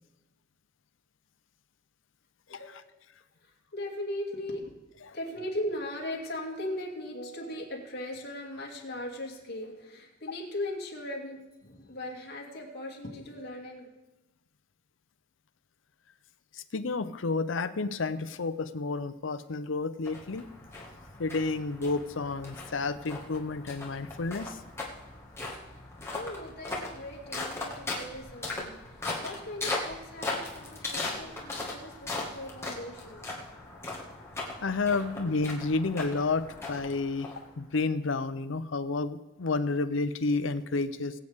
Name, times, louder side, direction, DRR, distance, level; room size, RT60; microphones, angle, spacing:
voice 1, 2.5-2.9 3.4-4.7 5.0-13.9 26.1-33.5 34.9-35.0, left 1 dB, 50° left, -1 dB, 2.6 m, -39 dB
voice 2, 16.7-20.5 21.2-24.6 34.6-37.3 37.6-41.1, left 3 dB, 70° left, 13 dB, 0.6 m, -30 dB
sound 1, 20.0-37.8, left 2 dB, 15° left, 1.8 m, -39 dB
21.5 x 8.0 x 3.6 m, 1.0 s
head